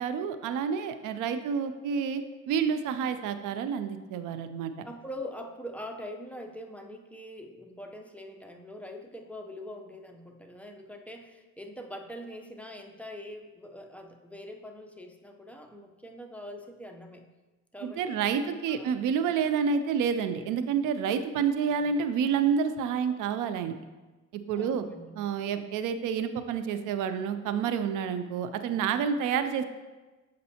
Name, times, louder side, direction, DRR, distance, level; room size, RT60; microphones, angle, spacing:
voice 1, 0.0-4.8 17.8-23.7 24.3-24.8 25.1-29.6, right 7 dB, 90° right, 10 dB, 0.5 m, -29 dB
voice 2, 4.8-17.2 17.7-18.3 18.7-19.0 21.6-21.9 24.5-25.2, left 1 dB, 5° left, 3 dB, 0.6 m, -43 dB
7.6 x 5.2 x 2.8 m, 1.2 s
cardioid pair, 90°, 30 cm